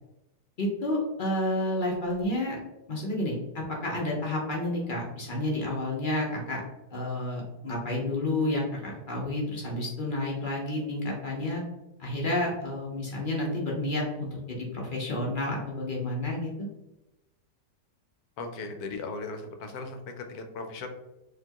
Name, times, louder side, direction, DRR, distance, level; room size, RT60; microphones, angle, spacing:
voice 1, 0.6-2.6 2.9-6.6 6.9-11.6 12.0-16.5, left 1 dB, 50° left, -3 dB, 0.6 m, -30 dB
voice 2, 18.4-20.9, left 3 dB, 70° left, 5 dB, 1.0 m, -37 dB
4.3 x 2.9 x 2.9 m, 0.98 s
omnidirectional pair, 1.8 m